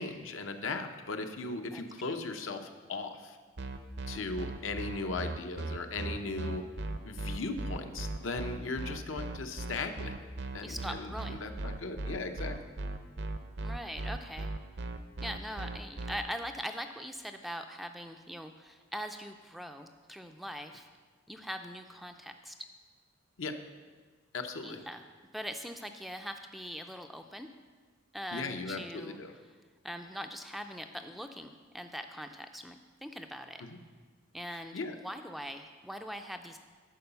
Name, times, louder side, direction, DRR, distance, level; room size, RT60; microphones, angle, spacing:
voice 1, 0.0-3.4 4.1-6.6 7.0-10.1 10.5-12.6 23.4-23.5 24.3-24.8 28.3-29.3 33.6-33.8 34.5-35.0, left 3 dB, 70° left, 6 dB, 0.7 m, -38 dB
voice 2, 1.7-2.2 10.6-11.4 13.6-14.5 15.2-20.9 21.3-22.5 24.6-25.0 25.3-27.5 28.1-29.2 29.8-33.6 34.3-36.6, equal, ahead, 6 dB, 0.3 m, -42 dB
sound 1, 3.6-16.2, right 2 dB, 55° right, 0.6 m, -37 dB
11.0 x 4.8 x 6.8 m, 1.5 s
head